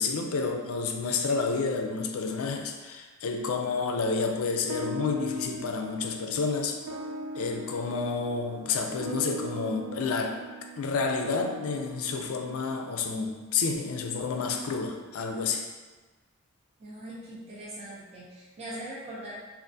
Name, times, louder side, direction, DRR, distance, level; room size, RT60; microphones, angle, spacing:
voice 1, 0.0-6.8 7.3-10.4 10.8-15.7, left 4 dB, 70° left, 4 dB, 0.4 m, -30 dB
sound 1, 4.7-13.4, right 1 dB, 80° right, 0.3 m, -40 dB
voice 2, 16.8-19.4, right 1 dB, 30° right, -6 dB, 0.5 m, -41 dB
3.5 x 2.4 x 2.6 m, 1.3 s
head